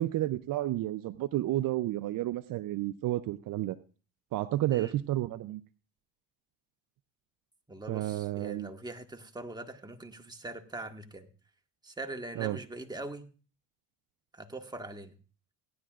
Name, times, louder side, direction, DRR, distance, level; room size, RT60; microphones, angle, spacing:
voice 1, 0.0-3.8 4.3-5.6 7.9-8.7 12.4-12.6, right 15 dB, 60° right, 13 dB, 0.6 m, -31 dB
voice 2, 7.7-11.3 11.8-13.3 14.3-15.1, right 2 dB, 10° right, 4 dB, 1.6 m, -42 dB
17.5 x 10.5 x 2.5 m, 0.35 s
supercardioid pair, 80°, 37 cm